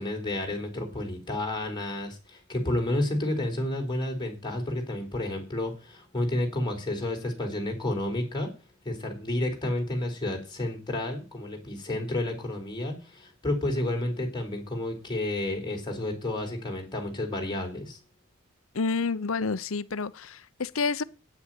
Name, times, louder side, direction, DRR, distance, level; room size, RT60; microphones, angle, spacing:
voice 1, 0.0-8.5 8.8-18.0, left 1 dB, 20° left, 4.3 m, -31 dB
voice 2, 18.7-21.0, left 4 dB, 75° left, 0.8 m, -29 dB
9.4 x 9.4 x 9.2 m
head